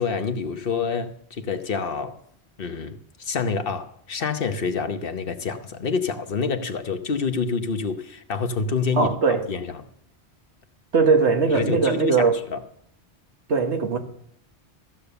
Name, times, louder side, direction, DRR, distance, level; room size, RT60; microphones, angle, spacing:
voice 1, 0.0-2.2 2.6-9.1 9.5-9.7 11.5-12.6, left 5 dB, 55° left, 1.1 m, -27 dB
voice 2, 8.9-9.5 10.9-12.4 13.5-14.0, right 4 dB, 85° right, 1.7 m, -20 dB
14.5 x 6.7 x 6.9 m
omnidirectional pair, 1.1 m